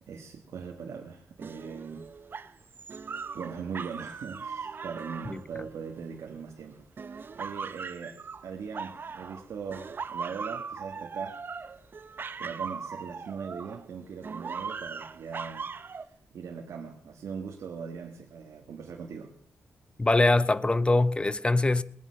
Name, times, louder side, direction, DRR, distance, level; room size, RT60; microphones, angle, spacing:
voice 1, 0.0-2.0 3.3-11.4 12.4-15.7 16.0-19.3, right 6 dB, 85° right, 1.4 m, -40 dB
sound 1, 1.4-6.4 7.0-9.4 9.7-13.9 14.2-16.1, right 5 dB, 45° right, 0.6 m, -39 dB
voice 2, 20.0-21.8, left 2 dB, 20° left, 0.6 m, -23 dB
19.0 x 9.7 x 5.7 m
cardioid pair, 95°, 5 cm